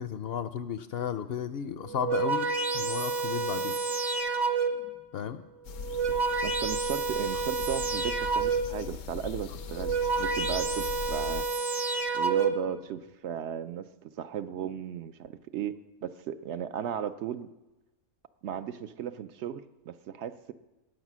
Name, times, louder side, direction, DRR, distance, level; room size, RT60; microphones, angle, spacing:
voice 1, 0.0-2.5 2.7-3.7 5.1-5.4, left 8 dB, 60° left, 12 dB, 0.7 m, -33 dB
sound 1, 1.8-5.0 5.7-8.9 9.6-12.8, right 4 dB, 25° right, 0.6 m, -29 dB
sound 2, 5.6-11.4, left 7 dB, 85° left, 1.1 m, -40 dB
voice 2, 6.4-11.5 12.1-17.5 18.4-20.5, right 9 dB, 70° right, 11 dB, 0.8 m, -35 dB
18.5 x 6.3 x 6.1 m, 1.0 s
omnidirectional pair, 1.3 m